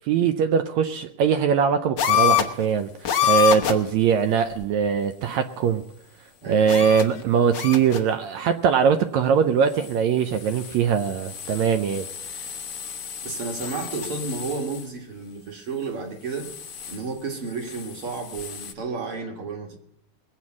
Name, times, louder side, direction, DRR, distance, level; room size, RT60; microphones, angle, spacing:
voice 1, 0.1-2.9 3.2-5.8 6.5-12.1, right 7 dB, 75° right, 8 dB, 1.8 m, -21 dB
sound 1, 2.0-2.7 3.0-3.9 4.5-4.6 6.7-7.2 7.5-8.1 9.7-10.0 10.3-14.9 16.3-17.0 17.5-18.7, left 10 dB, 85° left, 0.9 m, -27 dB
voice 2, 6.4-7.0 13.2-16.5 16.9-19.8, right 4 dB, 45° right, 2 dB, 2.3 m, -32 dB
21.0 x 8.2 x 6.1 m, 0.75 s
omnidirectional pair, 3.6 m